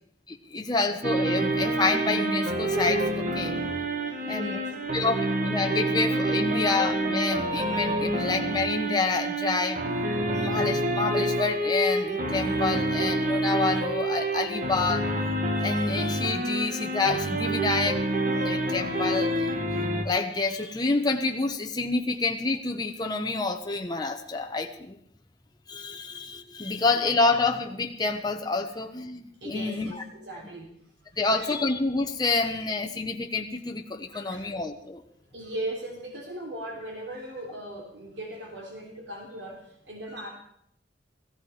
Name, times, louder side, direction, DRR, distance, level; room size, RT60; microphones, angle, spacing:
voice 1, 0.3-3.6 4.3-4.6 4.9-9.8 10.3-15.1 15.5-19.6 20.0-24.9 25.7-29.9 31.2-35.0, left 3 dB, 25° left, 3 dB, 1.1 m, -28 dB
sound 1, 1.0-20.0, right 1 dB, 50° right, 1.8 m, -27 dB
voice 2, 3.4-5.0 5.8-5.9 26.6-26.8 29.4-30.7 31.1-31.5 34.1-34.5 35.3-40.3, right 1 dB, 70° right, 0 dB, 3.3 m, -39 dB
16.5 x 15.5 x 5.0 m, 0.70 s
head